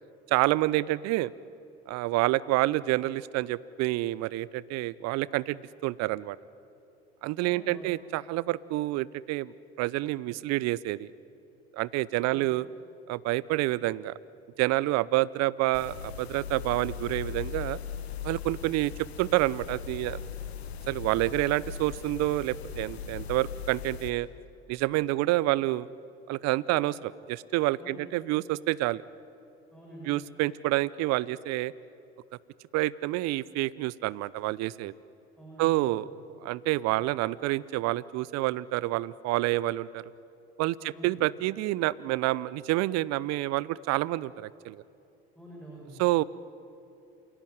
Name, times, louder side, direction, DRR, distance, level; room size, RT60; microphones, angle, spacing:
voice 1, 0.3-1.3 1.9-6.4 7.2-11.1 11.7-12.7 13.1-14.2 14.6-17.8 18.2-20.2 20.9-24.3 24.7-25.9 26.3-29.0 30.0-31.7 32.7-34.9 35.6-36.1 36.4-40.1 40.6-44.8 46.0-46.2, right 17 dB, 55° right, 21 dB, 0.7 m, -28 dB
voice 2, 7.4-7.9 12.2-12.5 27.8-28.0 29.7-30.2 35.4-36.0 40.8-41.2 45.4-46.0, right 1 dB, ahead, -4 dB, 7.1 m, -47 dB
sound 1, 15.7-24.1, left 7 dB, 80° left, 1.5 m, -39 dB
27.5 x 17.0 x 9.9 m, 2.7 s
hypercardioid pair, 60°, 31 cm